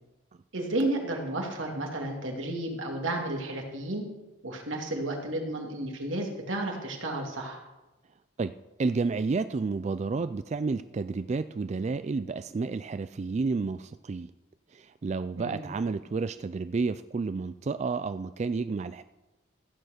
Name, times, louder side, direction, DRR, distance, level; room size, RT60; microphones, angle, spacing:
voice 1, 0.5-4.0 4.4-7.6 15.4-15.6, right 1 dB, 90° right, 1 dB, 2.6 m, -32 dB
voice 2, 8.8-14.3 14.7-19.0, right 4 dB, 35° right, 12 dB, 0.3 m, -30 dB
15.0 x 7.9 x 6.5 m, 1.1 s
head